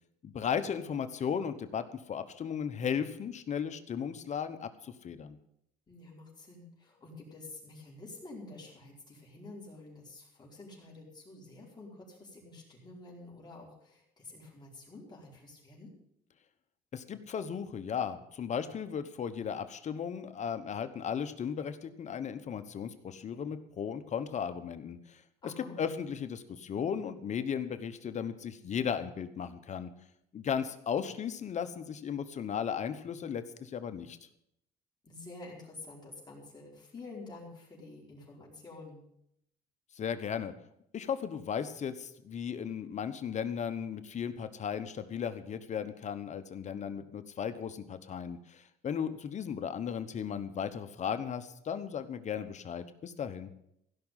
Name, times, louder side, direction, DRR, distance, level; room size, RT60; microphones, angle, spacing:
voice 1, 0.2-5.4 16.9-29.9 30.3-34.2 39.9-40.5 40.9-53.5, left 7 dB, 45° left, 10 dB, 1.1 m, -36 dB
voice 2, 5.9-15.9 25.4-25.8 35.0-39.0, left 2 dB, 25° left, -3 dB, 4.9 m, -49 dB
16.0 x 6.1 x 9.1 m, 0.75 s
cardioid pair, 110°, 17 cm